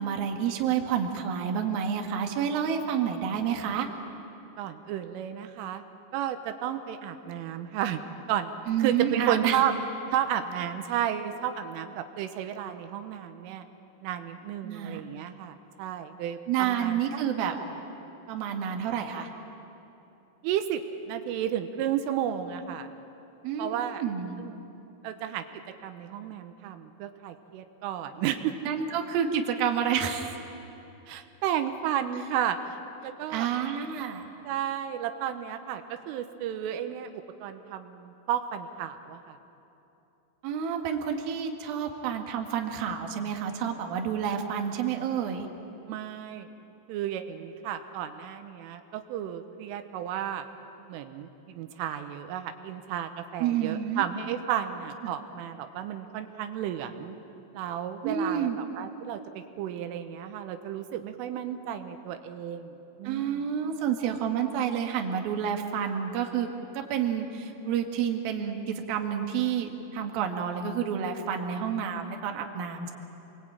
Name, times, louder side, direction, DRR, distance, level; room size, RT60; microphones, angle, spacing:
voice 1, 0.0-3.9 8.7-9.6 14.6-15.0 16.5-17.5 18.3-19.3 23.4-24.4 28.6-30.3 33.3-34.3 40.4-45.5 53.4-54.0 55.0-55.1 58.0-58.6 63.0-66.5 66.7-68.6 68.9-72.9, right 8 dB, 60° right, 3 dB, 3.1 m, -29 dB
voice 2, 4.6-5.8 6.1-8.0 8.3-8.5 8.8-9.7 10.1-13.7 14.0-17.0 20.4-20.8 21.1-22.9 23.6-24.0 24.4-24.6 25.0-25.4 25.8-28.7 31.1-32.8 33.0-33.5 34.4-37.1 37.4-39.4 45.9-46.5 46.9-50.4 50.9-57.2 57.5-63.4, right 10 dB, 85° right, 7 dB, 3.6 m, -32 dB
28.0 x 22.0 x 8.9 m, 2.9 s
omnidirectional pair, 5.6 m